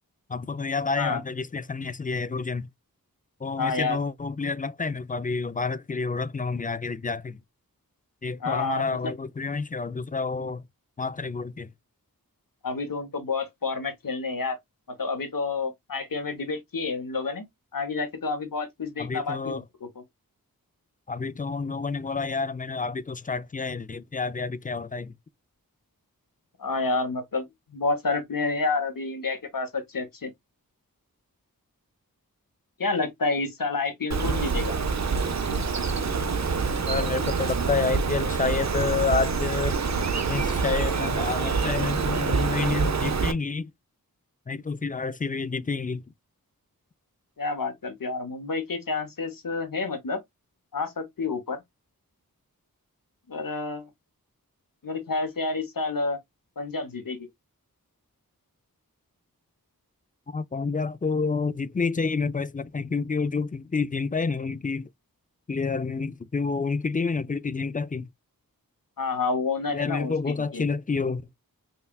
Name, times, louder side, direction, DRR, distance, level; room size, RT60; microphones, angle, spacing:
voice 1, 0.3-2.7 3.4-7.4 8.2-10.6 11.0-11.7 19.0-19.6 21.1-25.1 36.9-39.8 40.3-43.7 44.5-46.0 60.3-64.9 65.5-68.1 69.7-71.2, left 4 dB, 25° left, 0.3 m, -29 dB
voice 2, 3.6-4.0 8.4-9.1 12.6-14.6 15.0-17.5 17.7-19.9 26.6-30.3 32.8-34.8 47.4-50.2 50.7-51.6 53.3-53.9 54.8-56.2 56.6-57.3 69.0-70.6, left 3 dB, 65° left, 0.9 m, -29 dB
Bird, 34.1-43.3, right 5 dB, 50° right, 0.6 m, -26 dB
5.5 x 2.3 x 2.2 m
wide cardioid pair, 50°, 36 cm